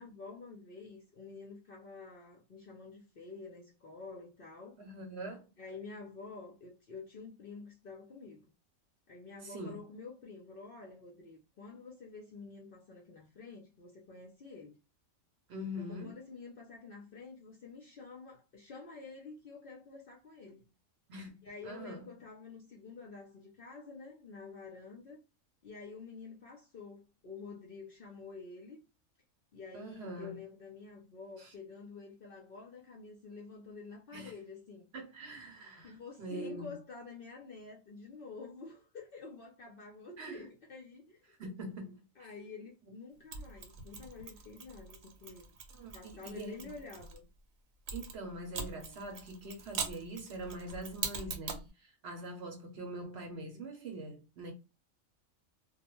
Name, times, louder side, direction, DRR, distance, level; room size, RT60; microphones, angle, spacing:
voice 1, 0.0-4.8 5.6-8.5 9.1-14.8 15.9-20.7 21.4-25.2 25.6-28.8 29.5-34.9 35.8-41.2 41.8-45.5 45.9-47.3, left 4 dB, 60° left, 0.6 m, -49 dB
voice 2, 4.8-5.5 9.4-9.8 15.5-16.2 21.1-22.1 29.7-30.4 31.4-31.5 34.1-34.3 34.9-36.7 40.2-40.4 41.3-42.3 45.8-46.6 47.9-54.5, right 1 dB, 60° right, 0.8 m, -44 dB
Mechanisms, 43.3-47.2 47.9-51.7, right 5 dB, 80° right, 1.0 m, -42 dB
2.3 x 2.1 x 2.9 m
omnidirectional pair, 1.4 m